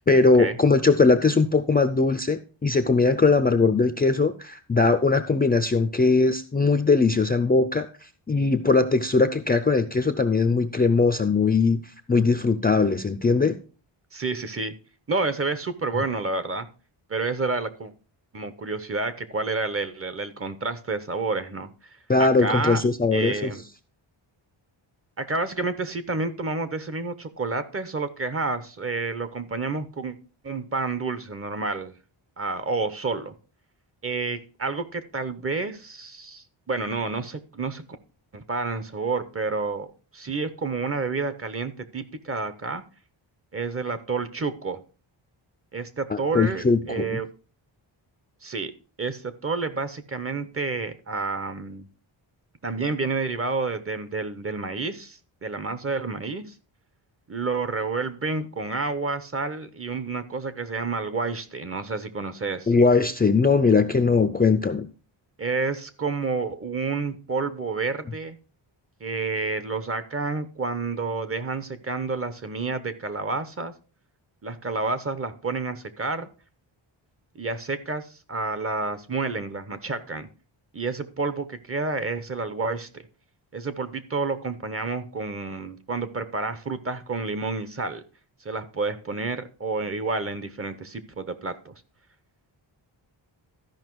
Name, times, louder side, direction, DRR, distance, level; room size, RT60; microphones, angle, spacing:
voice 1, 0.0-7.9 8.3-11.8 12.1-13.6 22.1-23.5 46.1-47.2 62.7-64.9, left 4 dB, 20° left, 10 dB, 0.4 m, -20 dB
voice 2, 14.1-14.7 15.1-16.7 17.1-17.9 18.3-21.7 22.2-22.8 23.1-23.6 25.2-30.1 30.4-31.9 32.4-33.3 34.0-37.8 38.3-39.9 40.1-42.8 43.5-44.8 45.7-47.3 48.4-48.7 49.0-51.9 52.6-56.5 57.3-62.7 65.4-68.4 69.0-73.7 74.4-76.3 77.3-80.3 80.7-83.0 83.5-88.0 88.4-91.7, right 3 dB, 30° right, 12 dB, 0.8 m, -29 dB
13.0 x 5.5 x 4.6 m, 0.36 s
wide cardioid pair, 165°, 48 cm